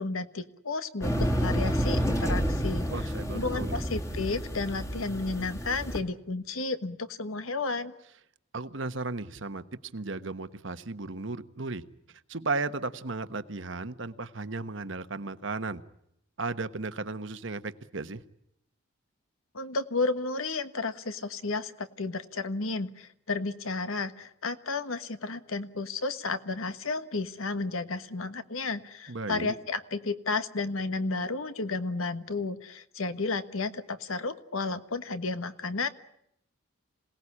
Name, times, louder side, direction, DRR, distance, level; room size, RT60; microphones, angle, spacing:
voice 1, 0.0-2.9 3.3-7.9 19.5-35.9, left 3 dB, 75° left, 11 dB, 1.4 m, -32 dB
sound 1, 1.0-6.0, equal, 15° left, 2.0 m, -29 dB
voice 2, 2.9-3.8 8.5-9.6 9.9-11.8 12.3-15.8 16.4-18.2 29.1-29.5, right 3 dB, 60° right, 10 dB, 1.2 m, -35 dB
27.0 x 18.5 x 9.9 m, 0.78 s
head